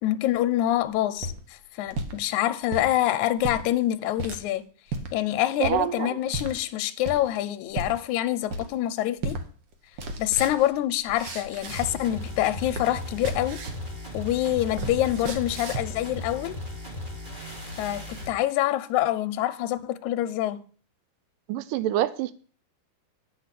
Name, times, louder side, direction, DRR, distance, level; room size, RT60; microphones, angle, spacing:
voice 1, 0.0-4.6 5.1-9.4 10.2-13.6 14.1-16.6 17.4-17.5 17.8-20.6, left 13 dB, 80° left, 1.8 m, -26 dB
sound 1, 0.9-2.2 2.6-2.9 3.4-3.6 4.2-4.4 4.9-5.1 5.6-5.8 6.3-6.5 7.0-7.4 7.7-8.0 8.5-8.9 9.2-9.4 9.7-12.1 12.4-13.9 14.2-16.0, right 2 dB, 70° right, 1.1 m, -34 dB
voice 2, 5.6-6.1 21.5-22.3, right 13 dB, 90° right, 2.2 m, -26 dB
sound 2, 11.6-18.3, left 1 dB, 20° right, 1.5 m, -37 dB
8.8 x 5.6 x 7.5 m
omnidirectional pair, 3.8 m